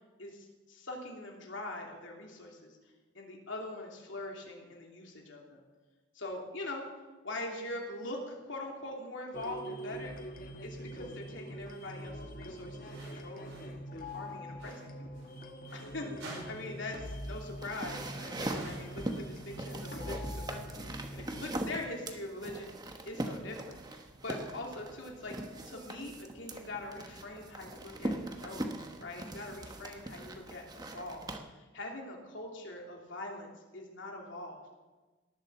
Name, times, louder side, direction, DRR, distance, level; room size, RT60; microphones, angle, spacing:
voice 1, 0.2-2.8 3.1-5.6 6.1-6.8 7.2-10.1 10.6-15.1 15.7-22.7 23.1-25.4 25.7-28.7 29.0-34.6, left 2 dB, 75° left, 0 dB, 2.8 m, -43 dB
sound 1, 9.3-21.5, equal, 45° left, 1.3 m, -44 dB
sound 2, 11.6-11.9 12.8-13.8 14.0-15.9 16.2-17.0 17.3-17.4 18.5-19.6, right 2 dB, 80° right, 5.7 m, -50 dB
sound 3, 17.0-31.4, right 1 dB, 20° right, 1.0 m, -41 dB
18.5 x 7.5 x 7.3 m, 1.2 s
head